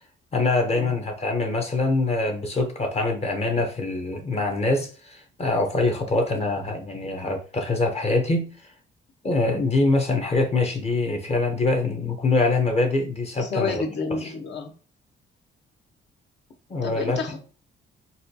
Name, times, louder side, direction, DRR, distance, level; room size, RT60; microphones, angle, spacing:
voice 1, 0.3-8.5 9.2-13.8 14.2-14.3 16.7-17.2, left 3 dB, 30° left, 0.7 m, -24 dB
voice 2, 13.4-14.7 16.8-17.4, left 4 dB, 65° left, 0.9 m, -30 dB
4.1 x 2.2 x 2.7 m
cardioid pair, 90°, 20 cm